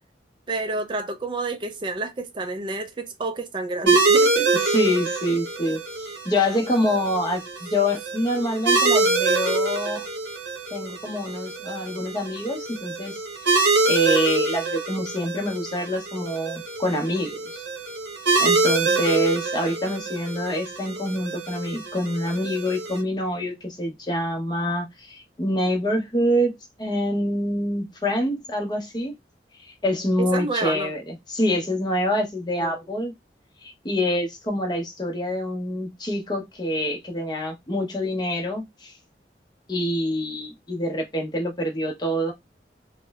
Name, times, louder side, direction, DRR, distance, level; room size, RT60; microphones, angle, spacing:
voice 1, 0.5-4.5 18.9-19.0 30.2-30.9 32.6-32.8, right 3 dB, 25° right, 0.3 m, -30 dB
sound 1, 3.9-23.0, right 3 dB, 85° right, 0.8 m, -25 dB
voice 2, 4.5-10.1 10.7-13.5 13.9-17.6 18.4-29.2 29.6-33.1 33.6-39.0 39.7-42.3, equal, 25° left, 0.7 m, -26 dB
2.9 x 2.0 x 2.2 m
head